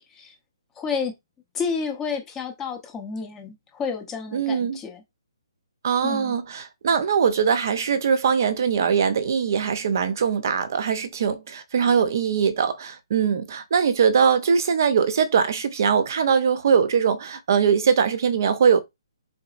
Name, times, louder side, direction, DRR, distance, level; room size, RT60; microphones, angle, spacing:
voice 1, 0.8-1.1 1.5-5.0 6.0-6.4, left 5 dB, 10° left, 0.6 m, -30 dB
voice 2, 4.3-4.8 5.8-18.8, right 6 dB, 40° right, 0.6 m, -21 dB
3.9 x 3.8 x 2.5 m
hypercardioid pair, 175°, 3 cm